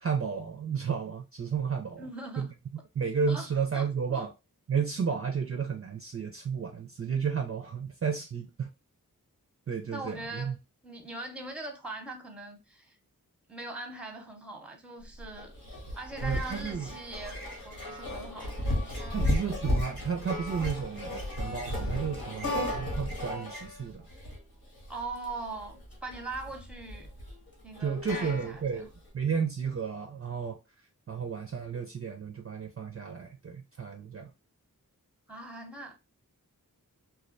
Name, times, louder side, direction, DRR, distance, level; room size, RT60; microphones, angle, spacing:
voice 1, 0.0-2.0 2.4-2.5 2.9-4.3 4.7-8.7 9.7-10.6 16.2-16.9 19.1-24.1 27.8-30.6 31.1-34.3, right 6 dB, 40° right, 0.4 m, -32 dB
voice 2, 2.0-2.5 3.3-3.5 3.7-4.2 9.9-10.6 10.8-13.0 13.5-15.5 16.0-19.3 24.9-27.1 27.6-28.9 35.3-36.0, right 2 dB, 5° right, 0.6 m, -41 dB
sound 1, 15.0-29.0, left 1 dB, 80° left, 1.0 m, -34 dB
2.2 x 2.2 x 2.5 m
wide cardioid pair, 50°, 36 cm